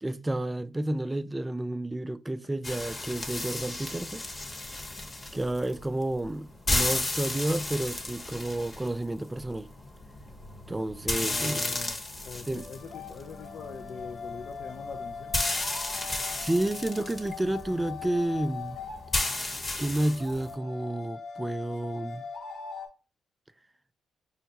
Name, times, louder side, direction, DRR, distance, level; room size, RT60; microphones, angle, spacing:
voice 1, 0.0-4.2 5.3-9.7 10.7-11.8 12.5-12.7 16.4-18.8 19.8-22.2, right 1 dB, 15° right, 0.4 m, -30 dB
sound 1, 2.6-20.5, left 2 dB, 35° left, 1.0 m, -34 dB
voice 2, 11.2-12.0 12.2-15.4, left 5 dB, 65° left, 0.4 m, -42 dB
sound 2, 11.9-22.9, left 5 dB, 85° left, 0.9 m, -42 dB
5.4 x 2.2 x 2.9 m
supercardioid pair, 65°, 0 cm